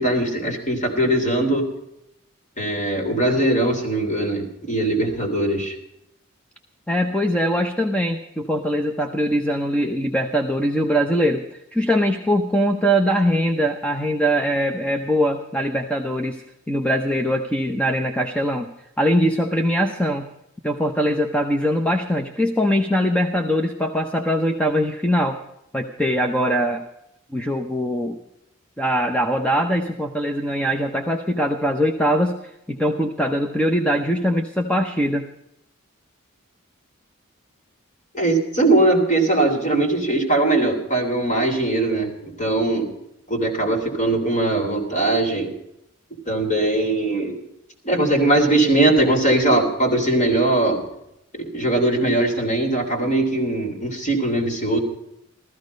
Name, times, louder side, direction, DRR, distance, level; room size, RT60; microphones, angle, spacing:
voice 1, 0.0-1.6 2.6-5.7 38.1-42.1 42.4-42.9 43.3-45.5 46.3-47.4 47.8-50.8 51.3-54.8, right 2 dB, 35° left, 2 dB, 3.3 m, -20 dB
voice 2, 6.9-18.7 19.0-20.2 20.6-25.4 25.7-26.8 27.3-28.2 28.8-35.3, equal, 5° left, 4 dB, 0.8 m, -22 dB
15.0 x 14.5 x 5.2 m, 0.81 s
head